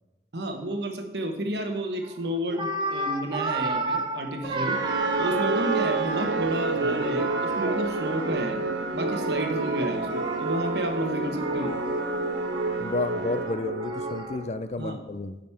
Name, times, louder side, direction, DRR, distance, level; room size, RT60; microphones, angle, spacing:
voice 1, 0.3-4.8 5.2-8.6 8.9-11.8 14.8-15.0, right 1 dB, 70° right, 5 dB, 1.1 m, -31 dB
sound 1, 2.0-2.2 2.5-6.5 6.9-8.6 9.0-14.4, right 2 dB, 25° right, 0.7 m, -33 dB
sound 2, 4.4-14.6, right 3 dB, 90° right, 0.7 m, -29 dB
voice 2, 12.8-15.4, left 2 dB, 40° left, 11 dB, 0.4 m, -31 dB
9.1 x 5.2 x 5.7 m, 1.1 s
head